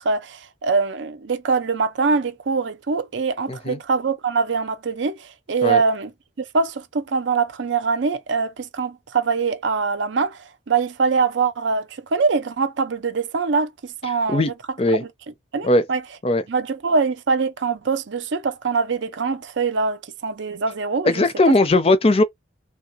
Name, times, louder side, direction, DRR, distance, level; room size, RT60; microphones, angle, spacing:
voice 1, 0.0-6.1 6.4-14.4 15.0-15.1 15.5-16.0 16.5-21.2, right 4 dB, 75° right, 0.5 m, -23 dB
voice 2, 3.5-3.8 5.6-5.8 14.3-14.5 14.8-15.0 15.6-15.8 16.2-16.4 21.0-22.2, left 2 dB, 30° left, 0.5 m, -18 dB
3.5 x 2.2 x 2.8 m
head